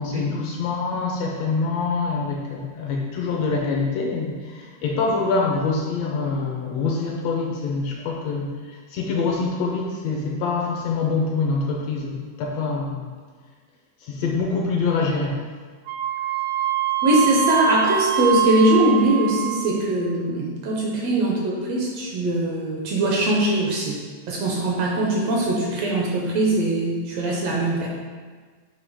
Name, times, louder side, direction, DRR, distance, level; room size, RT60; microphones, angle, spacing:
voice 1, 0.0-13.1 14.0-15.4, left 4 dB, 75° left, -1 dB, 1.6 m, -25 dB
Wind instrument woodwind instrument, 15.9-19.8, right 11 dB, 85° right, 2.1 m, -24 dB
voice 2, 17.0-24.0 24.3-27.9, right 1 dB, 70° right, -3 dB, 1.8 m, -21 dB
7.1 x 2.9 x 4.7 m, 1.5 s
omnidirectional pair, 3.4 m